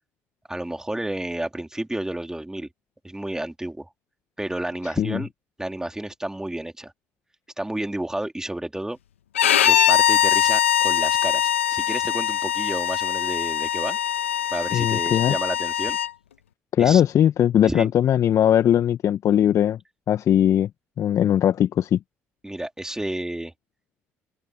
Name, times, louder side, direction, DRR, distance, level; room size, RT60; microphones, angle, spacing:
voice 1, 0.5-2.7 3.0-3.9 4.4-5.3 5.6-6.9 7.6-9.0 9.7-14.0 14.5-16.0 16.8-17.0 17.6-17.9 22.4-23.5, right 1 dB, 10° right, 3.5 m, -31 dB
Bowed string instrument, 9.3-16.1, left 10 dB, 85° left, 1.1 m, -22 dB
voice 2, 14.7-15.3 16.7-19.8 20.1-20.7 21.0-22.0, left 10 dB, 55° left, 1.4 m, -19 dB
open air
hypercardioid pair, 55°, 7 cm